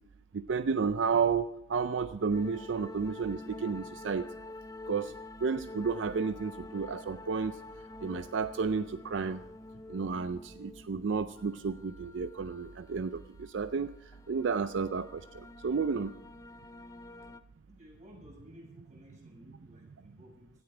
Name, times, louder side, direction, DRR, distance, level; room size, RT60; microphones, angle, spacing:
voice 1, 0.3-4.2 4.9-5.1 5.4-7.5 8.0-9.4 9.9-13.9 14.3-16.1, right 5 dB, 85° right, 12 dB, 0.5 m, -32 dB
sound 1, 2.3-17.4, left 2 dB, 20° left, 0.6 m, -48 dB
voice 2, 17.7-20.5, equal, 40° right, -1 dB, 6.6 m, -55 dB
17.0 x 13.0 x 4.9 m, 0.80 s
head